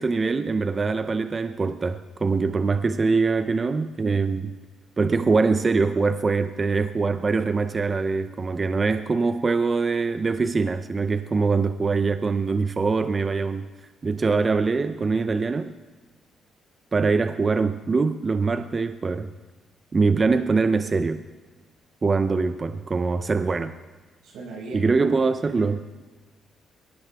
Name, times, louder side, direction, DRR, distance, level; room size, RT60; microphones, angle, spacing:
voice 1, 0.0-4.6 5.0-13.7 14.0-15.7 16.9-19.3 19.9-21.2 22.0-23.7 24.7-25.8, right 4 dB, 30° right, 10 dB, 0.6 m, -23 dB
voice 2, 24.2-25.1 25.5-25.8, right 3 dB, 90° right, -3 dB, 5.9 m, -38 dB
22.0 x 18.0 x 3.5 m, 1.3 s
cardioid pair, 90°, 0 cm